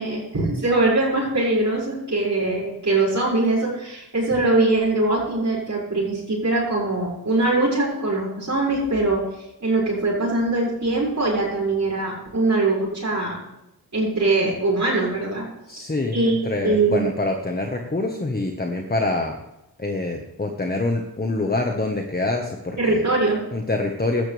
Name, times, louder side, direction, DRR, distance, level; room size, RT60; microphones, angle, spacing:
voice 1, 0.0-9.2 9.6-13.4 13.9-15.5 15.7-15.8 16.1-16.4 16.6-17.0 22.8-23.4, right 2 dB, 50° right, -8 dB, 6.2 m, -22 dB
voice 2, 15.7-19.4 19.8-23.1 23.5-24.3, left 2 dB, 25° left, 3 dB, 1.4 m, -25 dB
16.5 x 13.0 x 3.5 m, 0.91 s
wide cardioid pair, 95°, 38 cm